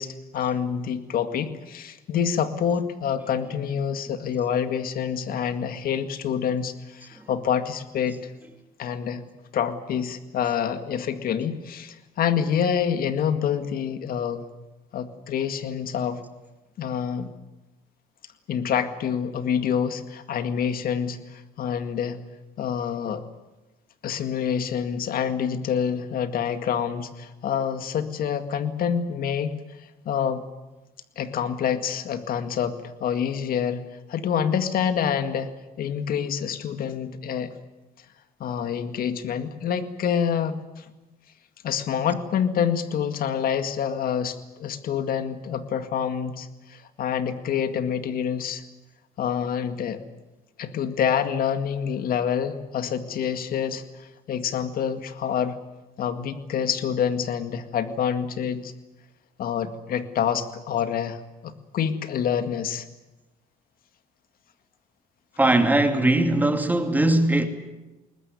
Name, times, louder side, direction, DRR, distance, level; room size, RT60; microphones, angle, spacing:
voice 1, 0.0-8.2 8.8-9.2 9.5-14.4 14.9-16.2 16.8-17.3 18.5-22.2 22.6-23.2 24.0-29.6 30.1-30.4 31.2-33.8 34.1-35.5 35.8-37.5 38.4-40.8 41.6-48.6 49.2-50.0 50.6-55.6 56.0-58.7 59.4-62.9, left 8 dB, 60° left, 2.0 m, -27 dB
voice 2, 65.4-67.5, right 2 dB, 10° right, 2.6 m, -20 dB
21.0 x 20.5 x 9.8 m
cardioid pair, 110°, 17 cm